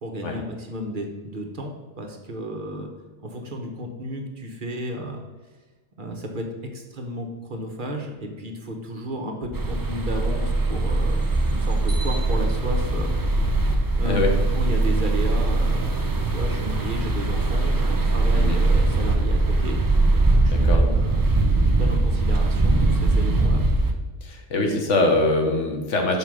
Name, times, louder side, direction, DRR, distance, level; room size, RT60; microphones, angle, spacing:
voice 1, 0.0-2.9 3.2-5.2 6.0-13.1 14.0-14.2 14.5-19.8 20.1-21.2 21.8-23.6, equal, 45° right, 2 dB, 1.0 m, -33 dB
sound 1, 9.5-23.9, right 2 dB, 25° right, 0.5 m, -21 dB
voice 2, 20.5-20.8 24.2-26.2, left 2 dB, 75° left, 3 dB, 1.5 m, -23 dB
5.5 x 5.2 x 6.1 m, 1.2 s
omnidirectional pair, 1.3 m